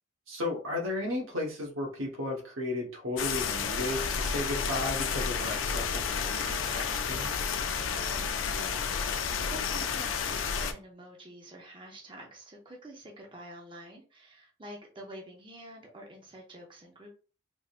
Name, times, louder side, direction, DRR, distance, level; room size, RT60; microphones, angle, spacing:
voice 1, 0.3-7.3, left 1 dB, 85° right, 1 dB, 1.1 m, -34 dB
sound 1, 3.2-10.7, left 6 dB, 75° left, 0.4 m, -31 dB
voice 2, 7.9-17.1, right 1 dB, 25° right, 0 dB, 0.6 m, -48 dB
3.5 x 2.7 x 2.4 m, 0.37 s
head